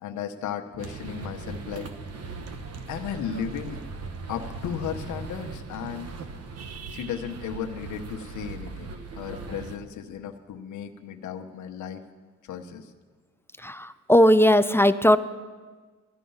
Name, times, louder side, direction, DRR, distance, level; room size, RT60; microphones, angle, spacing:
voice 1, 0.0-1.9 2.9-3.8 4.3-6.1 6.9-12.0 12.4-12.9, left 8 dB, 75° left, 5 dB, 1.0 m, -35 dB
sound 1, 0.8-9.8, right 4 dB, 55° right, 1.2 m, -39 dB
voice 2, 13.6-15.2, equal, 10° left, 12 dB, 0.4 m, -18 dB
15.0 x 11.5 x 5.6 m, 1.4 s
cardioid pair, 90°, 30 cm